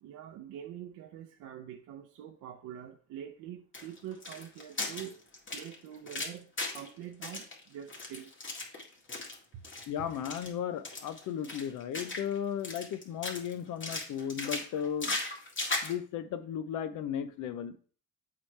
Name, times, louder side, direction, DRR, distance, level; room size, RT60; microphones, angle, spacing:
voice 1, 0.0-5.2 5.5-8.3 9.5-9.6, right 10 dB, 85° right, 0.7 m, -45 dB
sound 1, 3.7-6.9 7.2-9.4 9.6-9.8 10.1-10.5 10.8-12.4 12.6-13.5 13.8-15.9, left 3 dB, 40° left, 2.1 m, -37 dB
voice 2, 9.9-15.2 15.8-17.7, left 8 dB, 85° left, 0.7 m, -35 dB
7.5 x 4.9 x 3.3 m
cardioid pair, 90°, 30 cm